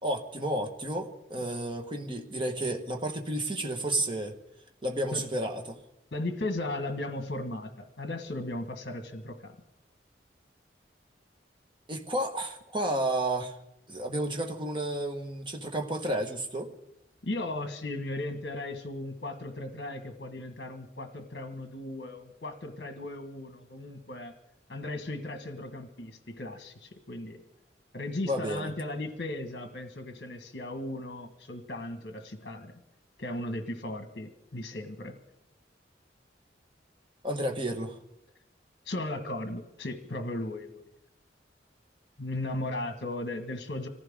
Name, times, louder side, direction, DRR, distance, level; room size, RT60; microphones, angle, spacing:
voice 1, 0.0-4.4 4.8-5.8 11.9-13.6 13.9-16.7 28.3-28.7 37.2-38.0, right 1 dB, 25° right, 3 dB, 1.5 m, -31 dB
voice 2, 6.1-9.6 17.2-24.3 24.7-27.4 27.9-32.7 33.2-35.2 38.8-40.9 42.2-43.9, left 2 dB, 60° left, 7 dB, 1.5 m, -36 dB
25.5 x 15.0 x 3.7 m, 0.82 s
head